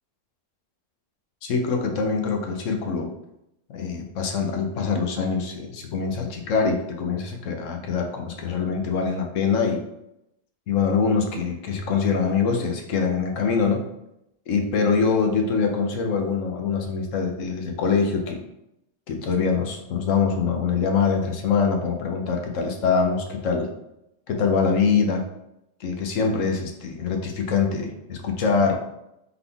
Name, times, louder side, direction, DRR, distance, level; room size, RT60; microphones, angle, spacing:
voice 1, 1.4-3.1 3.7-9.8 10.7-13.8 14.5-18.4 19.1-23.7 24.3-25.2 25.8-28.8, left 5 dB, 90° left, 3 dB, 1.2 m, -24 dB
3.9 x 3.8 x 3.4 m, 0.83 s
omnidirectional pair, 1.3 m